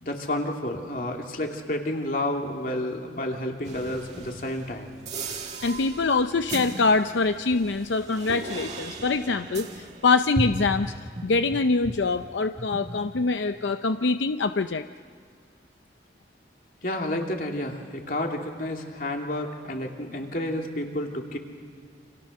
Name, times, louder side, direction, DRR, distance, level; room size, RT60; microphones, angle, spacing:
voice 1, 0.0-5.0 16.8-21.4, left 1 dB, 50° left, 2 dB, 2.9 m, -30 dB
sound 1, 3.6-12.3 12.6-13.7, right 1 dB, 40° right, 2.1 m, -36 dB
voice 2, 5.6-10.9 11.2-14.8, left 3 dB, 85° left, 9 dB, 0.6 m, -24 dB
29.5 x 27.0 x 6.6 m, 2.1 s
head